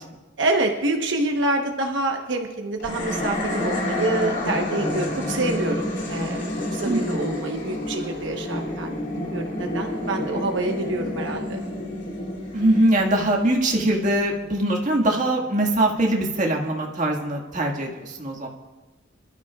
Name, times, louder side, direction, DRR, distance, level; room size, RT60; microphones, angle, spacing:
voice 1, 0.4-6.4 6.7-11.6, right 2 dB, 75° right, 2 dB, 1.0 m, -27 dB
sound 1, 2.8-14.2, left 1 dB, 65° left, 3.0 m, -29 dB
voice 2, 6.8-7.4 12.5-18.5, right 1 dB, 40° right, 0 dB, 1.8 m, -22 dB
26.5 x 12.5 x 2.4 m, 1.2 s
head